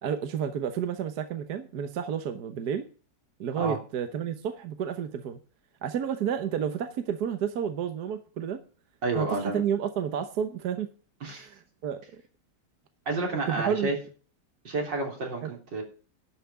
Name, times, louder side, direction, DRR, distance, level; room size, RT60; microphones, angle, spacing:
voice 1, 0.0-2.9 3.4-5.4 5.8-8.6 9.1-10.9 11.3-12.2 13.5-13.9 15.4-15.6, right 8 dB, 65° right, 8 dB, 1.4 m, -31 dB
voice 2, 9.0-9.6 11.2-11.5 13.1-14.0 14.6-15.8, right 2 dB, 90° right, 0 dB, 4.1 m, -30 dB
11.5 x 5.8 x 8.3 m, 0.38 s
omnidirectional pair, 1.9 m